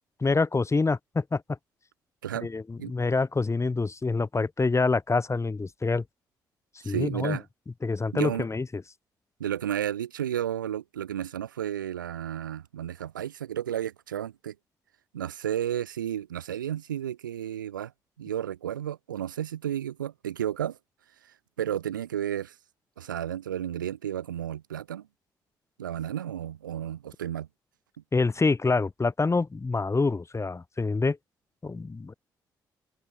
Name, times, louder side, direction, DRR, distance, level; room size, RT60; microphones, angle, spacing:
voice 1, 0.2-1.4 2.4-6.0 6.8-7.4 7.8-8.8 28.1-31.2 31.6-32.1, left 3 dB, 25° left, 1.9 m, -26 dB
voice 2, 6.8-7.4 8.1-8.5 9.4-14.5 15.1-17.9 18.2-20.8 21.6-22.5 23.0-25.1 25.8-27.5, right 10 dB, 85° right, 3.0 m, -32 dB
open air
figure-of-eight pair, 40°, 10 cm